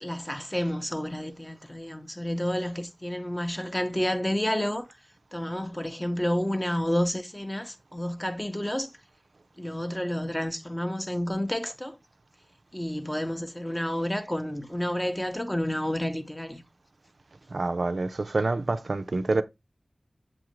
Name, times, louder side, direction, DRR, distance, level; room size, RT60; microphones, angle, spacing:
voice 1, 0.0-4.8 5.3-8.9 9.6-11.9 12.7-16.6, equal, 15° left, 0.6 m, -30 dB
voice 2, 17.5-19.4, right 3 dB, 75° right, 0.3 m, -27 dB
7.3 x 2.5 x 2.9 m
wide cardioid pair, 60°, 0 cm